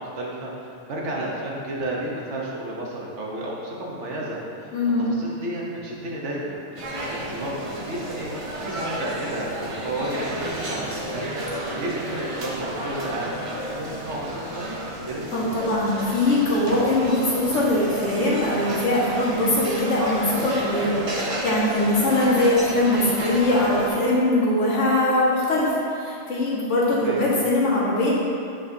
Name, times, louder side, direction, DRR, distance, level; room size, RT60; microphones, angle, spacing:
voice 1, 0.0-4.7 5.0-14.7 15.1-15.6 27.0-27.2, right 1 dB, 70° right, -3 dB, 1.3 m, -32 dB
voice 2, 4.7-5.1 15.3-28.1, left 1 dB, 75° left, -6 dB, 1.6 m, -22 dB
sound 1, 6.8-23.9, right 1 dB, 35° right, 0.6 m, -31 dB
8.4 x 4.9 x 2.7 m, 2.6 s
omnidirectional pair, 1.3 m